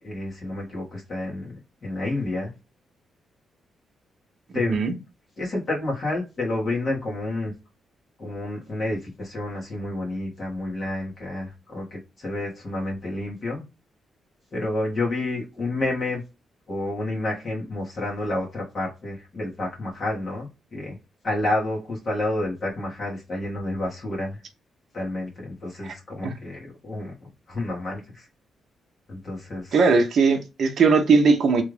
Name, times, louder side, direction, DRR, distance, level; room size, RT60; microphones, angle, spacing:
voice 1, 0.0-2.5 4.5-4.8 5.4-7.5 8.2-13.6 14.5-16.2 16.7-21.0 21.2-24.4 24.9-28.3 29.1-29.8, left 2 dB, 35° left, 1.6 m, -29 dB
voice 2, 29.7-31.6, right 4 dB, 45° right, 0.7 m, -19 dB
3.4 x 2.6 x 3.2 m
wide cardioid pair, 180°, 0 cm